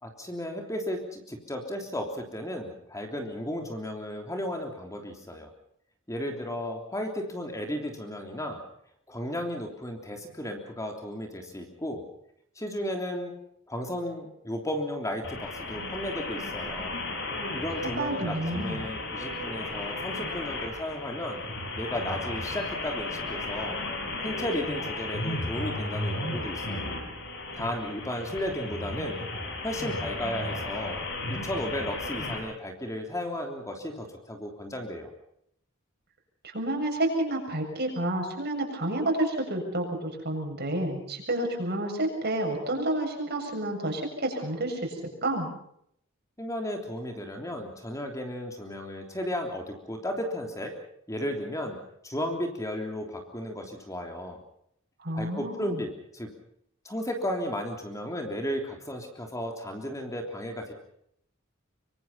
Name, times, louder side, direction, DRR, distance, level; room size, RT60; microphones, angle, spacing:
voice 1, 0.0-5.5 6.1-8.6 9.1-12.0 12.5-13.3 13.7-17.0 17.5-21.5 21.8-23.8 24.2-26.9 27.5-29.2 29.6-31.0 31.3-35.1 46.4-50.7 51.1-51.8 52.0-54.4 55.1-56.3 56.8-60.7, left 1 dB, 15° left, 3 dB, 3.3 m, -34 dB
sound 1, 15.2-32.4, left 2 dB, 60° left, 7.0 m, -34 dB
voice 2, 18.0-18.9 36.4-45.5 55.0-55.8, right 1 dB, 55° right, 2 dB, 7.3 m, -30 dB
25.0 x 24.5 x 5.7 m, 0.70 s
head